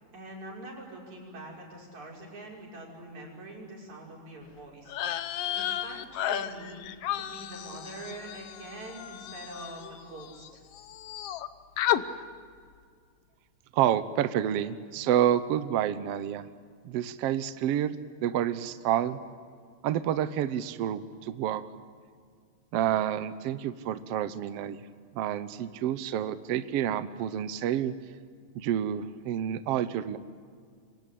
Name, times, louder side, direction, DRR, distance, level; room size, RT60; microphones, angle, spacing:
voice 1, 0.1-5.0 5.5-6.8 7.1-10.5, right 2 dB, 55° right, -1 dB, 7.1 m, -44 dB
sound 1, 4.9-10.5 10.7-11.5 11.8-12.0, left 11 dB, 75° left, 1.4 m, -33 dB
voice 2, 13.7-16.5 16.8-18.0 18.2-19.2 19.8-21.6 22.7-24.8 25.1-27.9 28.5-30.2, right 10 dB, 75° right, 13 dB, 1.4 m, -29 dB
27.5 x 24.5 x 8.5 m, 2.1 s
omnidirectional pair, 3.9 m